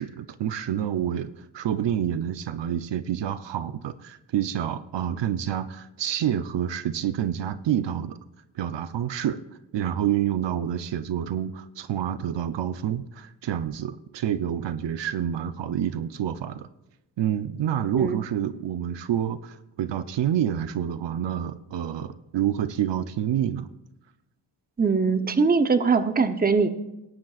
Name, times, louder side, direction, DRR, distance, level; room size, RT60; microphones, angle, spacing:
voice 1, 0.0-8.2 8.6-9.4 9.7-16.7 17.2-23.7, right 10 dB, 75° right, 12 dB, 0.7 m, -28 dB
voice 2, 24.8-26.7, right 4 dB, 20° right, 9 dB, 0.7 m, -21 dB
20.0 x 10.5 x 2.4 m, 0.95 s
wide cardioid pair, 110°, 43 cm